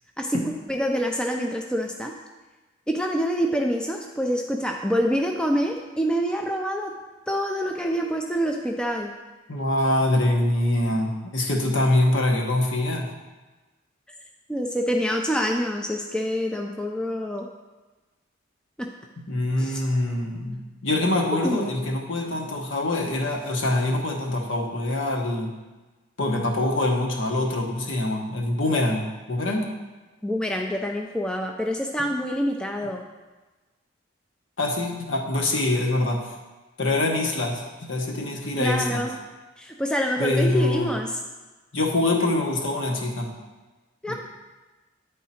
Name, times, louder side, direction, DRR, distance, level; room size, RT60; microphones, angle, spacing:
voice 1, 0.7-2.1 2.9-6.9 7.3-9.1 14.5-17.5 18.8-18.9 19.6-19.8 21.4-21.6 30.2-33.0 38.6-39.1 39.6-41.1 44.0-44.1, equal, 5° left, 1 dB, 0.3 m, -26 dB
voice 2, 9.5-13.1 19.3-25.5 26.2-29.7 34.6-36.2 36.8-39.0 40.2-40.9 41.7-43.3 44.1-44.2, left 1 dB, 70° left, 0 dB, 1.0 m, -24 dB
9.3 x 3.7 x 4.3 m, 1.2 s
head